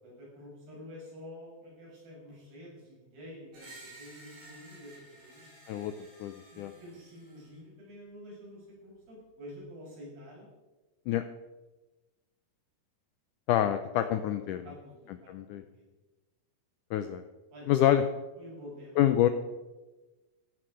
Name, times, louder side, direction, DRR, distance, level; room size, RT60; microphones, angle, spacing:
voice 1, 0.0-5.5 6.5-10.5 14.6-15.8 17.5-17.7 18.4-19.0, equal, 85° right, -4 dB, 8.8 m, -48 dB
Screech, 3.5-7.5, right 2 dB, 65° right, 5.9 m, -53 dB
voice 2, 6.2-6.7 11.1-11.2 13.5-14.6 15.3-15.6 16.9-17.2 17.7-18.0 19.0-19.3, left 11 dB, 85° left, 9 dB, 1.8 m, -26 dB
16.0 x 12.5 x 5.0 m, 1.1 s
omnidirectional pair, 4.4 m